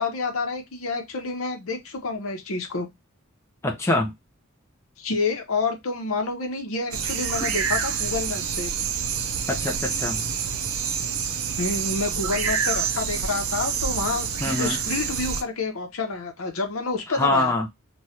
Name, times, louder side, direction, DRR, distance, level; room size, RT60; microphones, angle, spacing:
voice 1, 0.0-2.9 5.0-8.7 11.6-17.5, left 3 dB, 70° left, 0.8 m, -28 dB
voice 2, 3.6-4.1 9.5-10.2 14.4-14.8 17.1-17.7, left 2 dB, 10° left, 0.5 m, -24 dB
sound 1, 6.9-15.4, right 7 dB, 70° right, 0.5 m, -27 dB
3.0 x 2.3 x 2.7 m
head